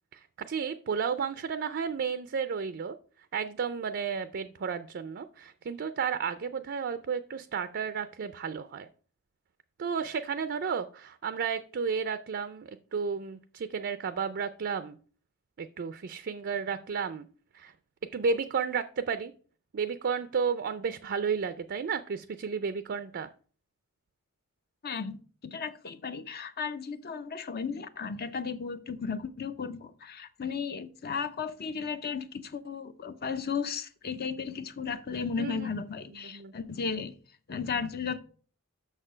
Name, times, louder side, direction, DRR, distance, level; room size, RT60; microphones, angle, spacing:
voice 1, 0.1-3.0 3.3-8.9 9.8-15.0 15.6-17.3 17.5-17.7 18.1-19.3 19.7-23.3 35.4-35.7 36.2-36.5, right 6 dB, 50° right, 0.4 m, -32 dB
voice 2, 24.8-25.2 25.4-37.1 37.5-38.2, left 6 dB, 45° left, 0.6 m, -35 dB
6.5 x 6.3 x 5.0 m
head